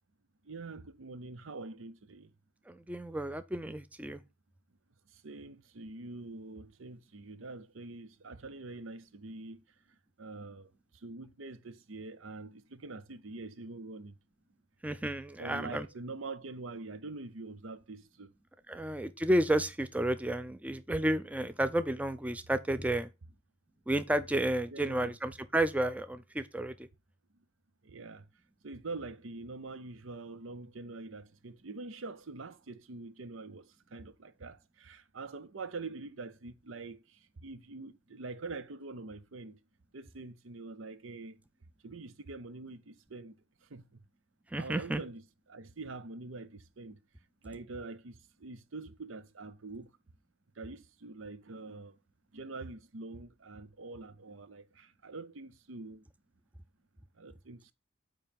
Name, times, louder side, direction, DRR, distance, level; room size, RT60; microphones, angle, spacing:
voice 1, 0.5-2.3 5.2-9.6 10.2-10.7 11.0-14.1 15.4-18.3 24.7-25.1 27.8-28.2 28.6-33.6 33.9-37.0 37.4-39.6 39.9-41.4 41.8-43.3 43.7-43.8 44.5-45.2 45.5-47.0 47.4-49.9 50.6-52.0 52.3-56.0 57.2-57.7, right 3 dB, 85° right, 0.7 m, -44 dB
voice 2, 2.7-4.2 14.8-15.9 18.7-23.1 23.9-26.9 44.5-45.0, right 1 dB, 5° right, 0.4 m, -31 dB
8.9 x 3.1 x 5.2 m
head